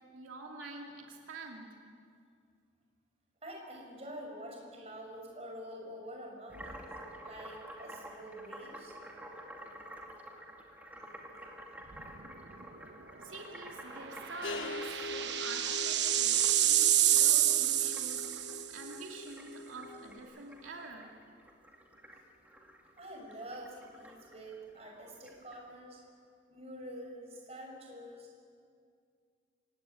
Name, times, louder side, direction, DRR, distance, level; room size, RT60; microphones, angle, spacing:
voice 1, 0.1-1.7 13.2-21.1, right 2 dB, 85° right, 0 dB, 2.8 m, -47 dB
voice 2, 3.4-6.9 7.2-9.0 23.0-26.0 26.5-28.4, equal, 30° right, 0 dB, 5.8 m, -47 dB
sound 1, 6.5-25.6, right 1 dB, 10° right, 2.4 m, -51 dB
sound 2, 11.9-12.3 12.6-12.7 14.1-18.8, right 12 dB, 60° right, 1.2 m, -28 dB
sound 3, 14.4-20.2, left 2 dB, 80° left, 1.4 m, -44 dB
26.0 x 17.0 x 9.7 m, 2.2 s
head